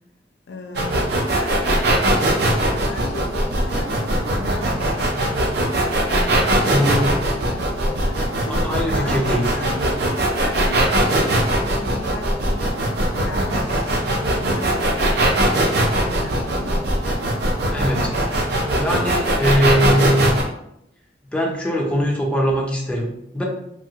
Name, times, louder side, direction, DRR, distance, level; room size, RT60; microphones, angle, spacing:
voice 1, 0.5-1.1 1.3-10.0 10.4-16.8, left 3 dB, 75° left, 4 dB, 0.4 m, -36 dB
sound 1, 0.7-20.4, right 1 dB, 65° right, 0.5 m, -20 dB
voice 2, 6.7-7.1 8.5-9.5 17.7-18.5 18.8-20.3 21.3-23.4, equal, 5° left, -2 dB, 0.5 m, -21 dB
3.1 x 2.2 x 2.7 m, 0.78 s
head